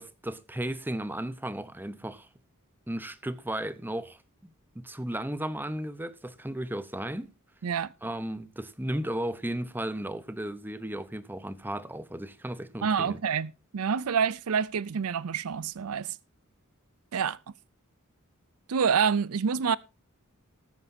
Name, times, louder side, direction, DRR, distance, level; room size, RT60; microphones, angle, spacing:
voice 1, 0.0-2.3 2.9-7.3 8.0-13.2, right 1 dB, 10° right, 0.8 m, -35 dB
voice 2, 12.8-16.2 17.1-17.4 18.7-19.8, right 6 dB, 85° right, 0.5 m, -27 dB
19.5 x 9.3 x 2.7 m
head